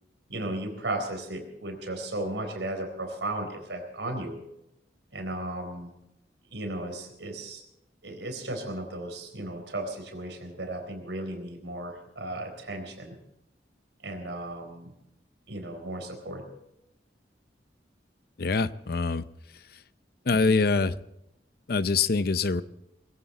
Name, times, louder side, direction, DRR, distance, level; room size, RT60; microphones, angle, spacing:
voice 1, 0.3-4.4 5.1-5.9 6.5-7.6 8.0-13.2 14.0-14.9 15.5-16.4, right 1 dB, 90° right, 5 dB, 4.1 m, -35 dB
voice 2, 18.4-19.3 20.3-21.0 21.7-22.6, left 4 dB, 55° left, 14 dB, 0.6 m, -24 dB
21.5 x 15.5 x 4.2 m, 0.84 s
head